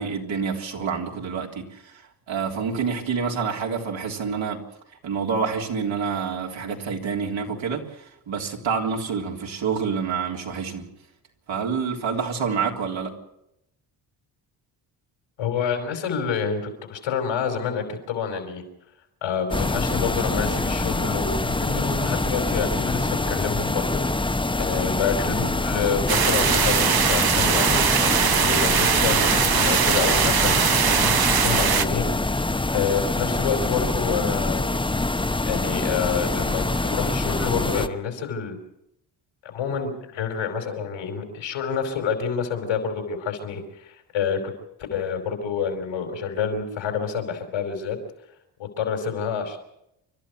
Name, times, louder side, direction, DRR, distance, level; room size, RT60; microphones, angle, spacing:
voice 1, 0.0-2.0 2.3-4.6 5.0-10.9 11.5-13.1, right 6 dB, 70° right, 0 dB, 3.7 m, -27 dB
voice 2, 15.4-16.6 16.9-18.6 19.2-24.2 24.6-32.0 32.4-34.6 35.5-38.6 39.4-44.4 44.9-48.0 48.6-49.6, left 6 dB, 85° left, 5 dB, 4.8 m, -28 dB
sound 1, 19.5-37.9, left 2 dB, 10° left, 0.9 m, -25 dB
sound 2, 26.1-31.8, right 8 dB, 50° right, 1.1 m, -21 dB
29.5 x 12.5 x 8.1 m, 0.82 s
cardioid pair, 70°, 47 cm